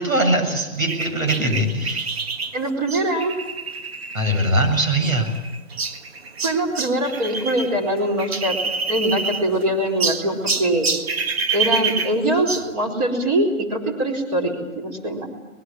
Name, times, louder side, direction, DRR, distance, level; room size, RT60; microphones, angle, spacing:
voice 1, 0.0-2.1 4.1-5.3, right 1 dB, 85° right, 5 dB, 7.9 m, -21 dB
sound 1, 0.9-7.7 8.0-9.6 10.0-12.7, right 4 dB, 50° right, 1.9 m, -27 dB
voice 2, 2.5-3.3 6.4-8.6 8.9-10.9 11.5-15.3, right 1 dB, 25° right, 2 dB, 4.4 m, -22 dB
25.5 x 20.5 x 8.8 m, 1.1 s
hypercardioid pair, 165°, 40 cm